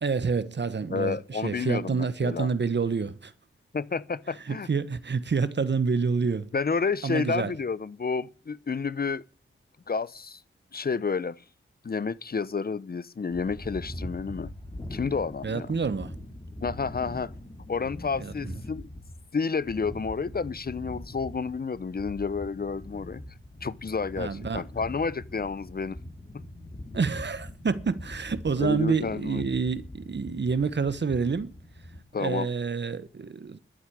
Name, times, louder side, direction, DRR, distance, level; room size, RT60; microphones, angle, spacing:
voice 1, 0.0-3.3 4.4-6.5 7.0-7.5 15.4-16.1 18.2-18.5 24.2-24.6 26.9-31.5 32.2-33.6, right 5 dB, 55° right, 1.2 m, -28 dB
voice 2, 0.9-2.5 3.7-4.7 6.5-9.2 9.9-10.4 10.7-11.4 11.8-14.5 14.9-15.7 16.6-17.3 17.7-18.9 19.3-23.2 23.6-26.0 28.6-29.5 32.1-32.5, left 5 dB, 45° left, 0.7 m, -30 dB
sound 1, 13.3-32.0, left 1 dB, 25° left, 3.3 m, -42 dB
12.0 x 8.2 x 10.0 m
wide cardioid pair, 75°, 21 cm